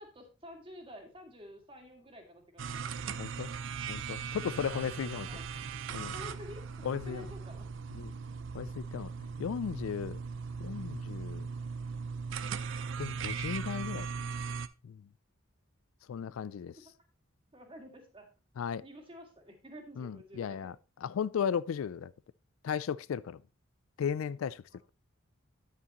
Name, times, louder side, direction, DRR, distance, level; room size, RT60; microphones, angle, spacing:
voice 1, 0.0-3.0 4.7-4.9 5.3-5.4 6.1-7.7 16.8-16.9 17.5-18.3 18.8-20.7 24.7-24.8, left 1 dB, 25° right, 2.0 m, -50 dB
sound 1, 2.6-14.7, right 5 dB, 65° right, 0.5 m, -39 dB
voice 2, 3.2-3.5 3.9-5.3 5.9-6.1 6.8-7.3 7.9-8.1 8.5-9.1 9.4-10.2 10.6-11.5 13.0-14.1 14.8-15.0 16.1-16.8 18.6-18.8 20.0-20.7 21.0-22.1 22.6-23.4 24.0-24.6, left 7 dB, 80° left, 0.3 m, -35 dB
9.7 x 8.5 x 2.9 m
head